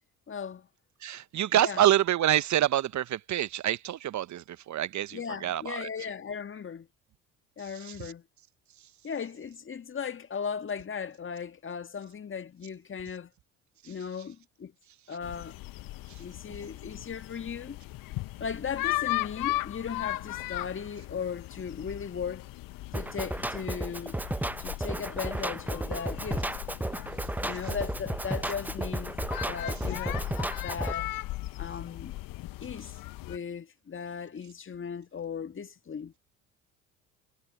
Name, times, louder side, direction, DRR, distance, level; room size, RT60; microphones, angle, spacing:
voice 1, 0.3-0.7 1.5-1.8 5.1-6.9 7.6-8.2 9.0-13.3 13.8-14.7 15.1-15.6 16.2-17.8 18.4-22.5 22.9-24.2 24.6-26.4 27.4-29.1 29.5-30.2 30.6-31.1 31.6-32.1 32.6-32.9 33.3-36.1, left 6 dB, 30° left, 1.8 m, -37 dB
voice 2, 1.0-5.9 7.8-8.1, right 12 dB, 45° right, 1.3 m, -27 dB
sound 1, 15.2-33.4, left 18 dB, 55° left, 1.2 m, -37 dB
Drum kit, 22.9-30.9, right 1 dB, 5° right, 1.0 m, -33 dB
figure-of-eight pair, 55°, 40 cm